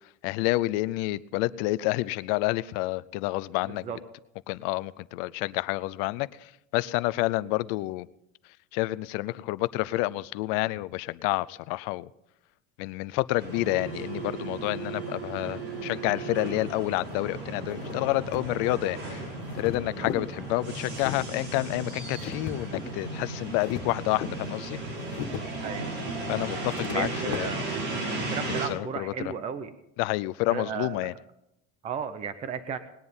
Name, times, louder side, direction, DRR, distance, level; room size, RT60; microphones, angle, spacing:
voice 1, 0.2-3.9 4.5-6.3 6.7-8.1 8.7-12.1 12.8-19.2 19.6-24.8 26.3-27.5 28.5-29.1 30.0-31.1, left 19 dB, 55° left, 0.5 m, -29 dB
sound 1, 13.4-28.7, right 3 dB, 55° right, 4.8 m, -35 dB
sound 2, 16.7-27.4, left 9 dB, 70° left, 1.7 m, -41 dB
voice 2, 26.9-27.9 28.3-29.7 30.5-31.1 31.8-32.8, right 7 dB, 20° right, 0.6 m, -35 dB
19.5 x 10.0 x 5.5 m
cardioid pair, 175°, 33 cm